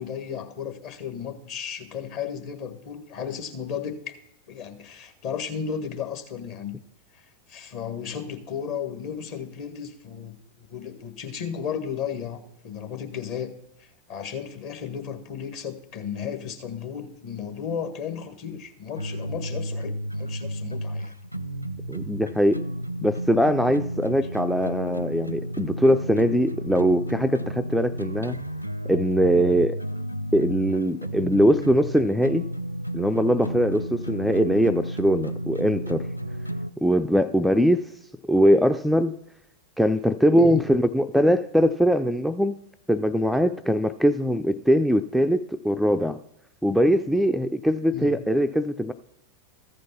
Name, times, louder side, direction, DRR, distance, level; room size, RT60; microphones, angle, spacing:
voice 1, 0.0-4.1 4.5-6.8 7.1-13.5 13.8-21.1 40.4-40.6 47.9-48.2, left 7 dB, 45° left, 7 dB, 1.5 m, -34 dB
sound 1, 19.0-36.7, right 1 dB, 90° left, 0.4 m, -32 dB
voice 2, 21.9-22.6 23.0-28.4 28.8-29.8 30.3-32.5 32.9-36.0 36.8-37.9 38.3-39.1 39.8-42.5 42.9-46.2 46.6-48.9, equal, ahead, 7 dB, 0.4 m, -21 dB
14.0 x 5.2 x 5.8 m, 0.81 s
figure-of-eight pair, 90°, 0 cm